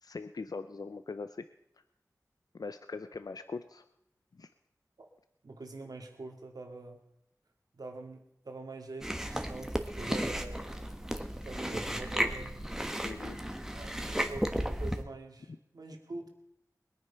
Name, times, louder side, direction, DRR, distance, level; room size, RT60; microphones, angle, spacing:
voice 1, 0.0-1.5 2.5-3.9 4.3-4.5 13.0-13.4 15.5-15.6, left 4 dB, 75° left, 10 dB, 0.6 m, -41 dB
voice 2, 5.4-7.0 7.7-10.7 11.4-12.6 13.7-16.3, right 2 dB, 85° right, 3 dB, 2.3 m, -44 dB
Chewing mastication, 9.0-15.0, equal, 5° right, 1.3 m, -34 dB
21.0 x 9.4 x 5.8 m, 0.79 s
wide cardioid pair, 55°, 6 cm